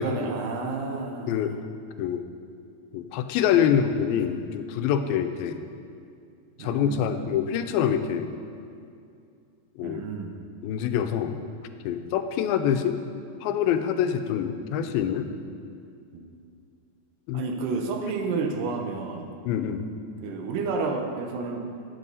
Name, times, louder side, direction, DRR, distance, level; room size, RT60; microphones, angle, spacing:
voice 1, 0.0-1.3 6.6-7.3 9.8-10.4 16.1-16.2 17.3-19.3 20.2-21.6, right 4 dB, 80° right, 3 dB, 2.3 m, -30 dB
voice 2, 2.9-5.6 6.6-8.3 9.8-10.0 10.6-11.4 11.9-13.0 13.4-15.3 17.3-17.4 19.5-19.9, left 8 dB, 90° left, 8 dB, 2.4 m, -25 dB
14.5 x 8.1 x 2.7 m, 2.4 s
omnidirectional pair, 4.2 m